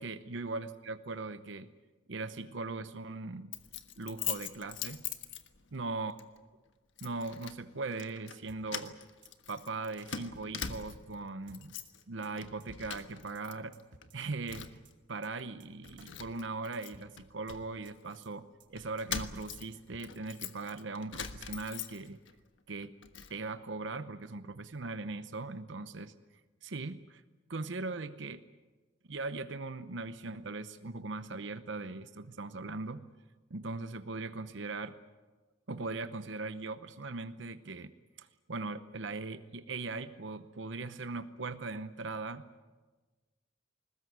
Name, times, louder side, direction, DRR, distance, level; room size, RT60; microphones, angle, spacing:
voice 1, 0.0-1.7 2.1-3.5 4.0-5.0 5.7-6.1 7.0-9.0 9.5-11.7 12.1-13.7 14.1-14.7 15.1-22.2 22.7-22.9 23.3-26.1 26.6-27.2 27.5-28.4 29.1-33.0 33.5-35.0 35.7-37.9 38.2-42.4, right 3 dB, 70° right, 11 dB, 0.9 m, -39 dB
Keys jangling, 3.5-5.8 6.2-6.4 7.0-7.6 7.9-8.4 8.7-11.2 11.5-12.0 12.3-13.5 13.8-14.9 15.4-15.5 15.8-18.2 18.8-22.3 22.7-23.3, left 8 dB, 75° left, 1.4 m, -42 dB
sound 1, 8.5-8.9 9.2-9.3 9.6-9.7 10.0-10.1 10.3-10.4 10.7-11.1 11.5-11.9 12.2-12.3 12.6-12.7 13.0-13.1 13.3-13.4 13.7-14.2 14.5-14.9 15.2-15.3 15.6-15.7 16.0-16.1 16.3-16.4 16.7-17.1 17.5-17.9 18.2-18.3 18.6-18.7 19.0-19.1 19.3-19.4 19.7-20.1, right 3 dB, 85° right, 2.7 m, -57 dB
21.5 x 20.0 x 9.4 m, 1.3 s
head